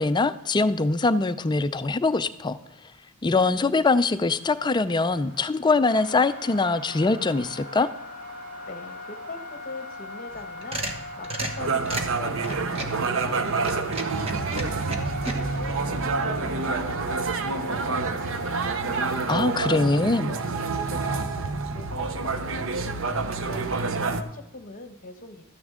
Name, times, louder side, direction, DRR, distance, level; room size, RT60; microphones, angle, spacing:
voice 1, 0.0-2.6 3.2-7.9 19.3-20.3, left 3 dB, 20° left, 12 dB, 0.3 m, -23 dB
sound 1, 4.0-21.6, left 1 dB, 85° right, 2.1 m, -41 dB
voice 2, 8.7-20.4 20.7-21.5 21.7-25.4, left 3 dB, 40° left, 8 dB, 1.0 m, -42 dB
sound 2, 10.3-13.0 13.5-15.3, right 2 dB, 25° right, 1.2 m, -32 dB
sound 3, 11.6-24.2, right 4 dB, 60° right, 0.7 m, -28 dB
13.0 x 9.7 x 3.7 m, 0.92 s
head